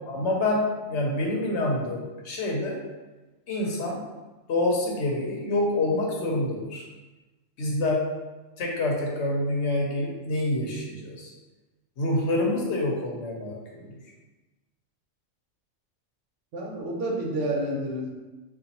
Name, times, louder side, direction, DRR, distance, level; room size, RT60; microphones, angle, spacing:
voice 1, 0.1-2.8 3.5-4.0 4.5-6.8 7.6-8.0 8.6-11.3 12.0-13.9, left 2 dB, 65° left, -1 dB, 0.9 m, -27 dB
voice 2, 16.5-18.1, right 1 dB, 70° right, -2 dB, 1.0 m, -29 dB
3.9 x 2.5 x 2.8 m, 1.2 s
omnidirectional pair, 1.3 m